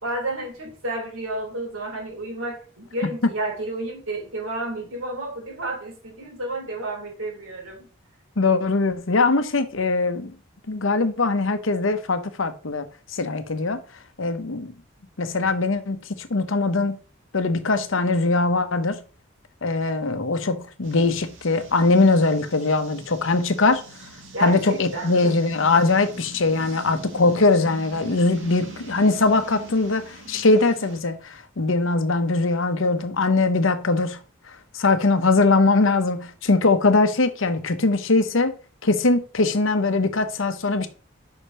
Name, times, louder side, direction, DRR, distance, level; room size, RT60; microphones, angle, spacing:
voice 1, 0.0-7.9 24.3-25.4, right 2 dB, 90° right, 3.5 m, -31 dB
voice 2, 8.4-10.3 10.7-12.9 13.1-13.8 14.2-14.7 15.2-17.0 17.3-19.0 19.6-23.8 24.4-34.2 34.7-38.5 38.8-40.9, left 3 dB, 75° left, 0.9 m, -21 dB
sound 1, 20.8-31.0, right 2 dB, 70° right, 2.2 m, -42 dB
5.8 x 5.1 x 5.5 m
head